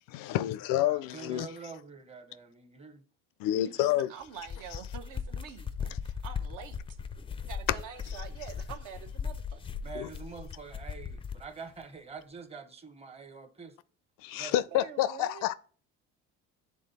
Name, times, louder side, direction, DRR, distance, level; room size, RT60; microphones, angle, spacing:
voice 1, 0.1-1.5 3.4-4.1 10.0-10.1 14.2-15.5, left 13 dB, 75° left, 0.5 m, -29 dB
voice 2, 0.8-3.1 9.8-13.8 14.3-14.5, right 5 dB, 20° right, 0.8 m, -45 dB
voice 3, 3.5-6.8 7.4-9.6 14.7-15.5, right 8 dB, 65° right, 0.9 m, -46 dB
sound 1, 4.3-11.5, left 6 dB, 15° left, 0.4 m, -38 dB
8.2 x 3.6 x 4.1 m
cardioid pair, 100°, 34 cm